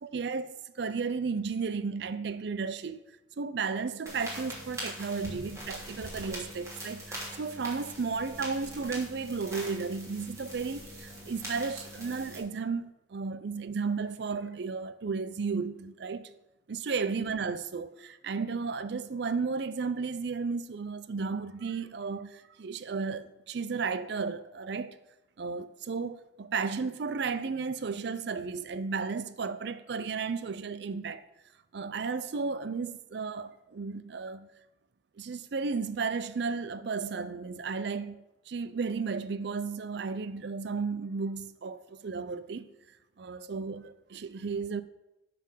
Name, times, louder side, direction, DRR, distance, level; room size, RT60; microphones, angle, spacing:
voice 1, 0.0-3.0 3.4-16.3 16.7-25.0 25.4-31.2 31.7-34.5 35.2-38.2 38.5-42.6 43.2-44.8, right 4 dB, 65° right, 0.5 m, -34 dB
sound 1, 4.1-12.4, right 1 dB, 15° right, 2.8 m, -42 dB
12.5 x 4.3 x 5.5 m
head